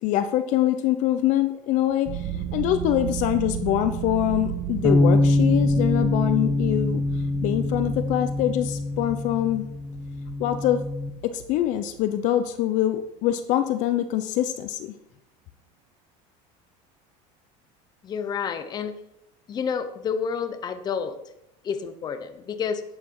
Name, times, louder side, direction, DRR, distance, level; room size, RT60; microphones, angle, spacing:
voice 1, 0.0-7.0 7.4-9.7 10.4-10.8 11.2-14.9, left 12 dB, 50° left, 10 dB, 0.7 m, -24 dB
sound 1, 2.1-12.2, right 9 dB, 40° right, 1.0 m, -34 dB
sound 2, 4.8-11.1, left 2 dB, ahead, 1.4 m, -24 dB
voice 2, 18.0-19.0 19.5-21.2 21.6-22.8, left 6 dB, 25° left, 9 dB, 0.9 m, -29 dB
11.5 x 8.5 x 4.8 m, 0.84 s
cardioid pair, 160°, 16 cm